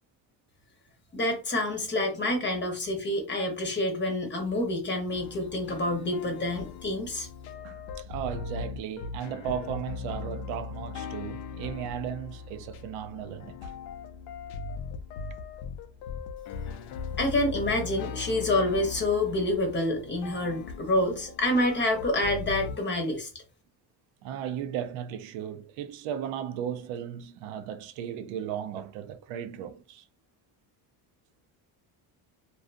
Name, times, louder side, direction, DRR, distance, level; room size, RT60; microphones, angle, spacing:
voice 1, 1.1-7.3 17.2-23.3, left 1 dB, 25° left, 0.8 m, -27 dB
sound 1, 5.1-22.8, left 5 dB, 75° left, 0.5 m, -39 dB
voice 2, 7.6-13.7 24.2-30.1, right 9 dB, 85° right, 0.5 m, -36 dB
2.5 x 2.3 x 2.4 m
cardioid pair, 105°, 46 cm